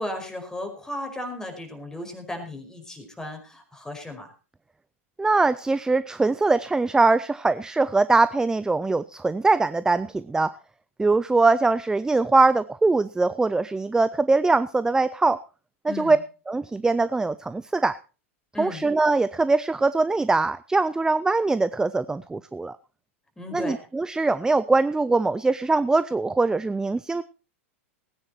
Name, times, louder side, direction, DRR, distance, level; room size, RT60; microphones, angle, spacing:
voice 1, 0.0-4.3 15.9-16.2 18.5-18.8 23.4-23.8, left 1 dB, 10° left, 5 dB, 5.0 m, -35 dB
voice 2, 5.2-10.6 11.0-15.4 15.8-16.2 16.5-18.0 18.6-22.8 23.5-27.2, right 3 dB, 10° right, 15 dB, 0.6 m, -22 dB
19.0 x 9.8 x 4.5 m, 0.35 s
figure-of-eight pair, 95°, 7 cm